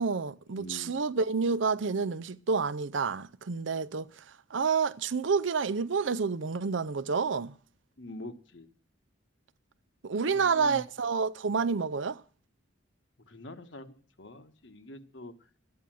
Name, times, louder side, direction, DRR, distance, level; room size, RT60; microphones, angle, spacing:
voice 1, 0.0-4.1 4.5-7.5 10.0-12.2, right 5 dB, 85° right, 0.6 m, -29 dB
voice 2, 0.5-0.9 8.0-8.7 10.3-10.8 13.3-15.3, left 1 dB, 75° left, 1.4 m, -45 dB
12.5 x 9.6 x 7.7 m
head